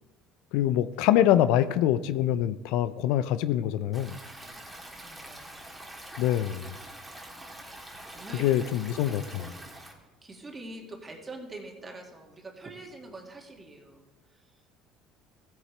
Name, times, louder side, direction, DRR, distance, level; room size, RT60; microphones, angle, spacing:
voice 1, 0.5-4.2 6.2-6.7 8.4-9.4, left 12 dB, 80° left, 0.4 m, -25 dB
Stream, 3.9-9.9, right 1 dB, 5° right, 1.9 m, -45 dB
voice 2, 4.3-5.6 7.8-8.5 9.3-9.7 10.0-14.0, right 2 dB, 25° right, 2.0 m, -45 dB
15.0 x 8.1 x 3.3 m
supercardioid pair, 90°, 0 cm